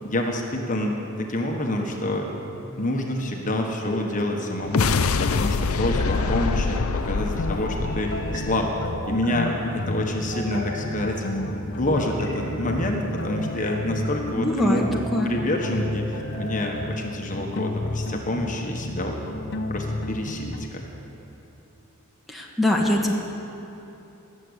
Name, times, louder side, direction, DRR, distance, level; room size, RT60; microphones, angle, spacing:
voice 1, 0.0-2.3 2.8-6.8 7.0-8.7 9.1-11.2 11.6-19.2 19.7-20.8, left 1 dB, 35° left, 1 dB, 1.3 m, -27 dB
sound 1, 2.1-2.8 4.2-5.0 5.8-6.6 7.7-8.4 9.0-9.7 10.3-11.2 11.8-12.5 13.2-14.1 14.7-15.3 16.0-16.8, equal, 35° right, 2.5 m, -40 dB
sound 2, 4.6-9.1, left 4 dB, 75° left, 0.6 m, -25 dB
sound 3, 7.2-20.7, left 1 dB, 50° left, 0.9 m, -32 dB
voice 2, 14.4-14.8 15.1-15.3 22.3-23.1, left 1 dB, ahead, -1 dB, 1.4 m, -22 dB
19.0 x 7.7 x 8.1 m, 2.9 s
head